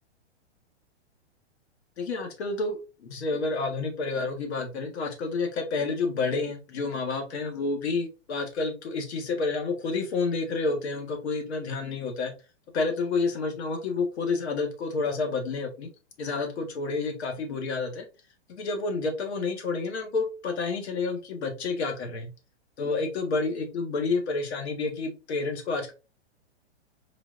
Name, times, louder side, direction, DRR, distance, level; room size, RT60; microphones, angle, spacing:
voice 1, 2.0-12.3 12.7-15.9 16.2-18.0 18.5-22.3 22.8-25.9, left 3 dB, 70° left, 4 dB, 1.6 m, -29 dB
4.2 x 3.8 x 2.5 m, 0.30 s
hypercardioid pair, 165°, 34 cm